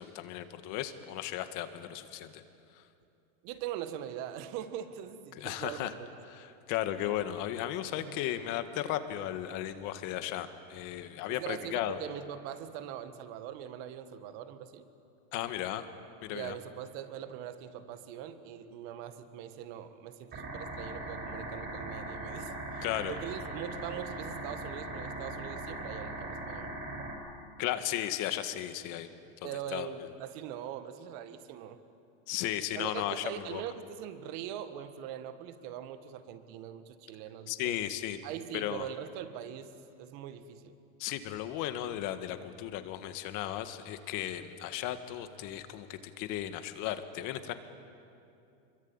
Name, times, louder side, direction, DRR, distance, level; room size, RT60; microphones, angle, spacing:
voice 1, 0.0-2.4 2.8-2.9 5.4-5.9 6.3-12.0 15.3-15.8 16.2-16.6 22.8-23.2 27.6-29.1 29.4-29.9 32.3-33.6 37.5-38.2 38.5-38.9 41.0-47.5, left 12 dB, 45° left, 9 dB, 1.8 m, -35 dB
voice 2, 3.4-6.1 7.0-7.1 8.0-8.2 11.3-14.9 16.3-26.7 29.4-31.8 32.7-37.8 38.2-40.7, right 10 dB, 50° right, 10 dB, 1.9 m, -42 dB
sound 1, 20.3-27.1, right 2 dB, 25° right, 6.2 m, -40 dB
26.0 x 23.0 x 8.9 m, 2.7 s
supercardioid pair, 140°, 42 cm